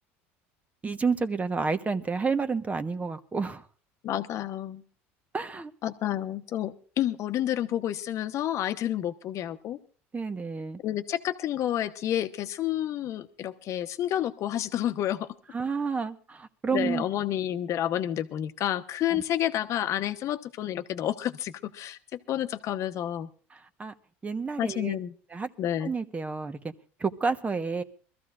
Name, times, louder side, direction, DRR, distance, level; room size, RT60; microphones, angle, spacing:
voice 1, 0.8-3.6 5.3-5.7 10.1-10.8 15.5-17.0 19.1-19.2 23.5-23.9 24.2-25.0 25.3-25.5 25.8-26.7 27.0-27.8, right 4 dB, 20° right, 10 dB, 1.1 m, -30 dB
voice 2, 4.0-4.8 5.8-9.8 10.8-15.3 16.7-23.3 24.6-25.1 25.6-25.9, left 11 dB, 50° left, 10 dB, 1.0 m, -30 dB
23.0 x 14.0 x 2.5 m, 0.39 s
hypercardioid pair, 85°, 6 cm